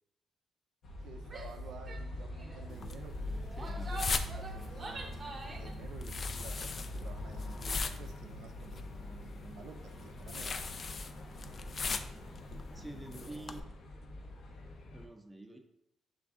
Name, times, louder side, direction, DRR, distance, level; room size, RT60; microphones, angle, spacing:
sound 1, 0.8-15.1, left 1 dB, 60° left, 0.7 m, -43 dB
voice 1, 1.0-10.6 13.1-13.7, right 6 dB, 75° right, 5 dB, 0.4 m, -53 dB
Female speech woman speaking / Yell, 1.3-1.6 1.9-2.0 2.3-2.6 3.3-5.8, right 3 dB, 35° right, 0.8 m, -45 dB
sound 2, 2.7-13.6, left 4 dB, 40° left, 0.3 m, -41 dB
voice 2, 3.6-4.1 12.7-13.6 14.9-15.6, right 1 dB, 5° right, 4 dB, 0.6 m, -47 dB
5.8 x 2.5 x 3.6 m, 0.83 s
cardioid pair, 90°, 0 cm